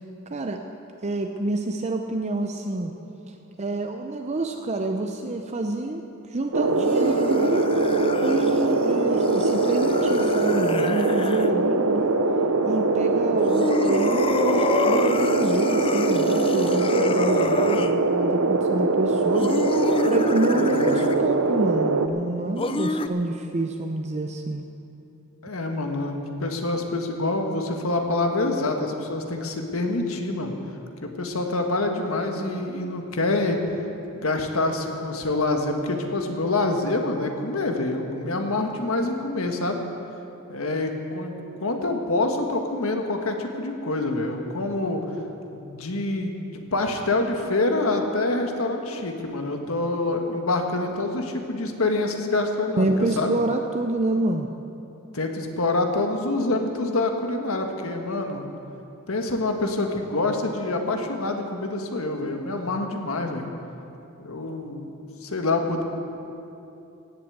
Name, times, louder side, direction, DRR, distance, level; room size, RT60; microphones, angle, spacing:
voice 1, 0.3-0.6 1.0-2.9 3.3-6.0 6.3-7.7 8.2-12.2 12.7-19.6 20.1-24.7 52.8-54.5, right 2 dB, 30° right, 4 dB, 0.6 m, -27 dB
sound 1, 6.5-22.1, right 3 dB, 85° right, 0.9 m, -22 dB
sound 2, 6.7-11.5 13.3-17.9 19.3-21.3 22.6-23.1, left 3 dB, 25° left, 0.5 m, -28 dB
voice 2, 20.5-21.1 25.4-30.6 31.0-33.6 34.2-39.8 40.5-41.3 41.6-45.1 45.5-53.4 55.1-58.5 59.1-63.4 64.2-64.9 65.2-65.8, left 2 dB, 75° left, 4 dB, 1.5 m, -26 dB
16.5 x 8.3 x 8.0 m, 2.8 s
head